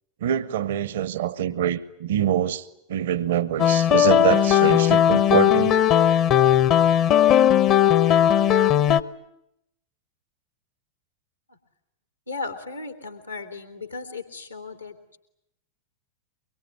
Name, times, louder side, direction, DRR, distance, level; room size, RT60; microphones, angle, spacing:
voice 1, 0.2-2.6 2.9-5.8, right 10 dB, 60° right, 1.0 m, -25 dB
sound 1, 3.6-9.0, left 10 dB, 35° left, 0.9 m, -18 dB
voice 2, 12.3-15.2, left 3 dB, 85° left, 3.0 m, -36 dB
24.0 x 23.0 x 9.6 m
figure-of-eight pair, 90°, 0 cm